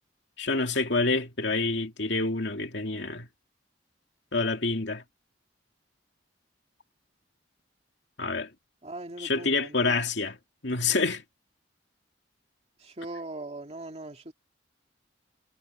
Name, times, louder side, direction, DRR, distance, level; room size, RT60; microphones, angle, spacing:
voice 1, 0.4-3.3 4.3-5.0 8.2-8.5 9.2-10.3 10.6-11.2, left 3 dB, 70° left, 2.4 m, -27 dB
voice 2, 8.8-10.0 12.8-14.3, right 2 dB, 35° right, 2.5 m, -40 dB
head